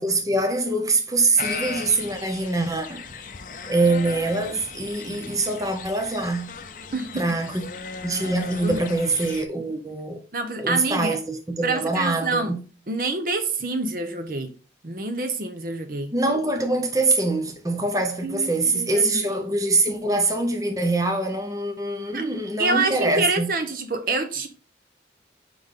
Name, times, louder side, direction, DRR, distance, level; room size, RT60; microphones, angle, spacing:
voice 1, 0.0-3.1 3.7-6.5 7.2-7.6 8.0-10.2 10.6-12.6 16.1-23.5, right 2 dB, 20° right, 0.7 m, -24 dB
sound 1, 1.4-9.4, left 5 dB, 45° left, 0.6 m, -37 dB
voice 2, 6.9-7.3 8.6-8.9 10.3-11.2 11.6-12.5 12.9-14.5 14.8-16.1 18.2-19.4 22.1-22.2 22.6-24.5, right 3 dB, 50° right, 0.8 m, -27 dB
5.4 x 5.1 x 3.7 m
head